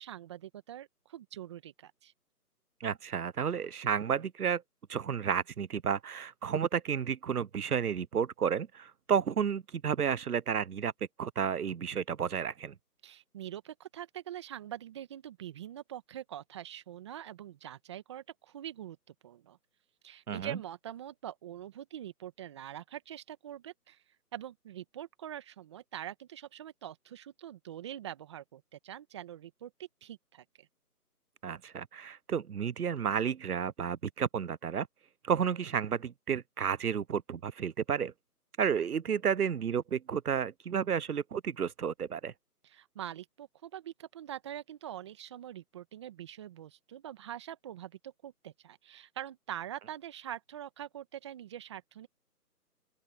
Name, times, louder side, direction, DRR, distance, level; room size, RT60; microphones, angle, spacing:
voice 1, 0.0-2.1 13.0-19.0 19.2-19.6 20.0-24.0 24.3-30.7 42.6-52.1, right 11 dB, 20° right, 1.6 m, -44 dB
voice 2, 2.8-4.6 4.9-10.9 11.2-12.7 20.3-20.6 31.4-34.9 35.2-38.1 38.6-42.3, right 7 dB, 70° right, 0.8 m, -31 dB
open air
figure-of-eight pair, 160°, 47 cm